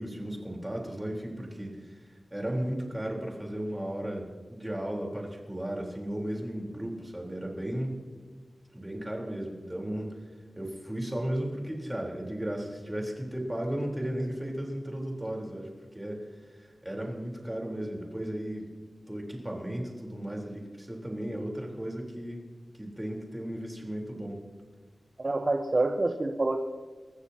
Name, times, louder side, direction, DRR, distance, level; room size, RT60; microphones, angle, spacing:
voice 1, 0.0-8.0 8.7-10.2 10.6-18.6 19.1-22.4 22.8-24.4, right 1 dB, 15° right, 0 dB, 3.7 m, -35 dB
voice 2, 25.2-26.6, right 2 dB, 40° right, 4 dB, 0.9 m, -27 dB
28.0 x 14.5 x 2.8 m, 1.5 s
wide cardioid pair, 95°, 0 cm